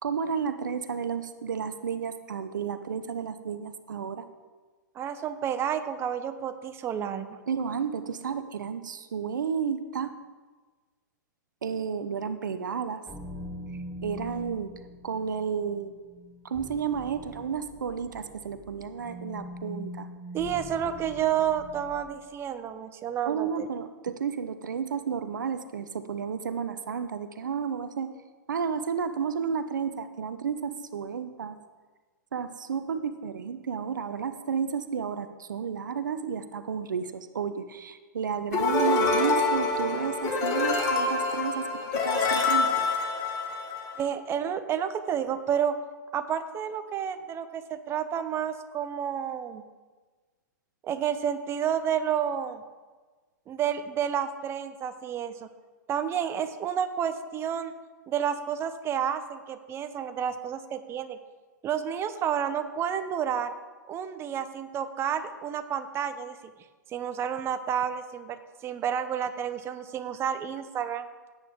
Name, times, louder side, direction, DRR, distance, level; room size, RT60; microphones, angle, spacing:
voice 1, 0.0-4.3 7.5-10.1 11.6-13.0 14.0-14.7 15.0-15.9 16.4-20.1 23.2-28.1 28.5-31.6 32.3-41.7 42.0-42.9, right 6 dB, 70° right, 10 dB, 0.8 m, -32 dB
voice 2, 4.9-7.3 20.3-23.7 44.0-45.8 46.1-49.6 50.8-52.6 53.5-55.5 55.9-57.7 58.1-61.2 61.6-63.5 63.9-66.4 66.9-71.1, right 8 dB, 25° right, 10 dB, 0.9 m, -30 dB
sound 1, 13.1-22.2, equal, ahead, 1.2 m, -43 dB
sound 2, 38.5-44.0, left 3 dB, 30° left, 2.0 m, -26 dB
16.0 x 8.9 x 3.7 m, 1.3 s
figure-of-eight pair, 110°, 10 cm